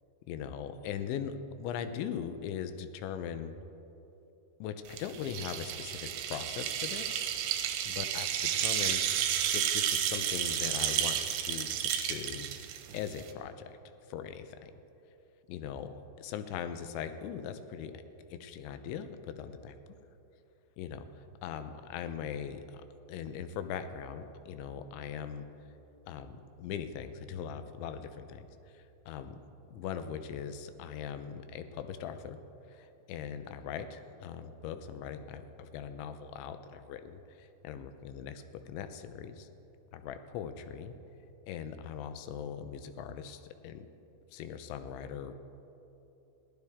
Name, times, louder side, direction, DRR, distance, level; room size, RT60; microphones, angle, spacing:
voice 1, 0.3-3.5 4.6-7.2 7.9-12.5 12.9-13.8 14.1-14.7 15.5-17.9 18.3-19.8 20.8-22.8 23.1-25.5 26.1-29.4 29.7-32.4 32.7-39.5 39.9-41.0 41.5-43.9 44.3-45.3, left 8 dB, 85° left, 9 dB, 3.1 m, -40 dB
sound 1, 4.9-13.3, right 10 dB, 85° right, 3.3 m, -32 dB
22.0 x 15.5 x 3.6 m, 3.0 s
omnidirectional pair, 5.2 m